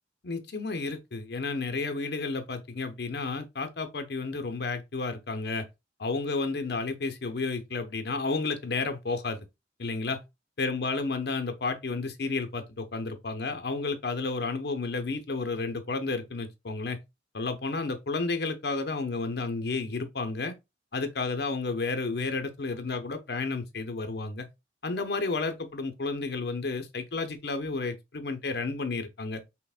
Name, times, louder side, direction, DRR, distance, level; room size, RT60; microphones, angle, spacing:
voice 1, 0.2-5.7 6.0-9.4 9.8-10.2 10.6-17.0 17.3-20.5 20.9-24.5 24.8-29.4, left 3 dB, 60° left, 0.6 m, -31 dB
5.7 x 2.1 x 2.4 m
head